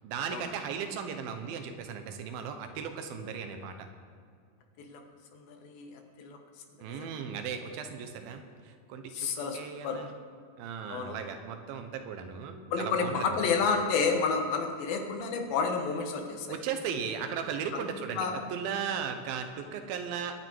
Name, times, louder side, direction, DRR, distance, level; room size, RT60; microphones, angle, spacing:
voice 1, 0.0-3.7 6.8-10.1 10.6-13.4 16.5-20.3, right 7 dB, 85° right, 7 dB, 2.8 m, -37 dB
voice 2, 5.3-6.4 6.9-7.1 9.1-10.0 10.9-11.2 12.7-16.6 17.7-18.4, left 5 dB, 80° left, 4 dB, 3.1 m, -31 dB
21.5 x 9.1 x 4.6 m, 2.2 s
omnidirectional pair, 4.1 m